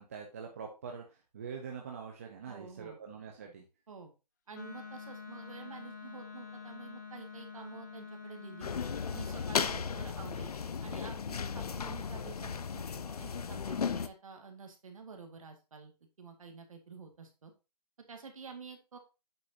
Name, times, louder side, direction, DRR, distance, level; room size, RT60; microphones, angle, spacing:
voice 1, 0.0-3.6, right 6 dB, 20° right, 1 dB, 0.8 m, -44 dB
voice 2, 2.5-3.0 3.9-4.1 4.5-8.7 9.1-15.9 16.2-17.5 18.1-19.0, right 5 dB, 50° right, 4 dB, 2.0 m, -49 dB
Wind instrument woodwind instrument, 4.5-9.7, left 5 dB, 25° left, 0.7 m, -47 dB
sound 1, 8.6-14.1, left 6 dB, 60° left, 0.7 m, -35 dB
8.4 x 6.7 x 2.8 m, 0.28 s
hypercardioid pair, 175°, 21 cm